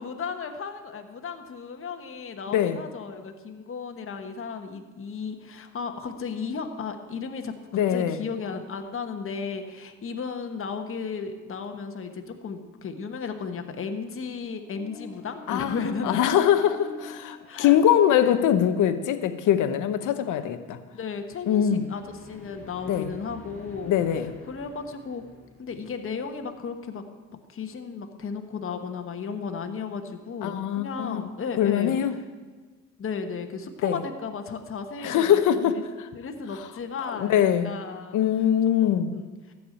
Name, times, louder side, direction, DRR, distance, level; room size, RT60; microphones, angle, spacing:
voice 1, 0.0-16.2 17.5-17.8 18.2-18.4 20.9-23.9 24.5-25.3 25.6-27.0 27.3-32.0 33.0-35.8 36.1-38.2 38.8-39.5, left 5 dB, 45° left, 6 dB, 1.2 m, -35 dB
voice 2, 2.5-2.8 7.7-8.2 15.5-20.8 21.5-21.8 22.9-23.1 23.8-24.3 30.4-31.2 31.6-32.1 33.8-34.0 35.0-35.7 37.1-37.7 38.1-39.1, left 10 dB, 80° left, 10 dB, 0.9 m, -22 dB
sound 1, 14.6-18.9 21.5-26.5, left 3 dB, 5° left, 4.1 m, -47 dB
14.0 x 4.8 x 8.6 m, 1.4 s
cardioid pair, 90°, 30 cm